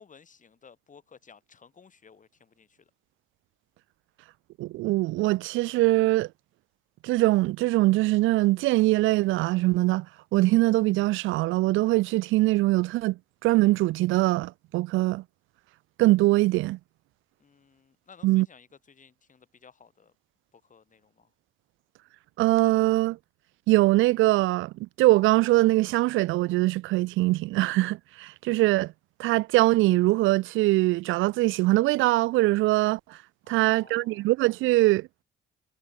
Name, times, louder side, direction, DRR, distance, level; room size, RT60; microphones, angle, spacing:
voice 1, 0.0-2.9 17.4-20.2 20.5-21.3 33.4-34.3, left 6 dB, 40° left, 3.4 m, -55 dB
voice 2, 4.6-6.3 7.0-10.1 10.3-15.2 16.0-16.8 18.2-18.5 22.4-23.2 23.7-28.9 29.2-33.2 33.5-35.1, right 19 dB, 90° right, 0.4 m, -22 dB
cardioid pair, 90°, 20 cm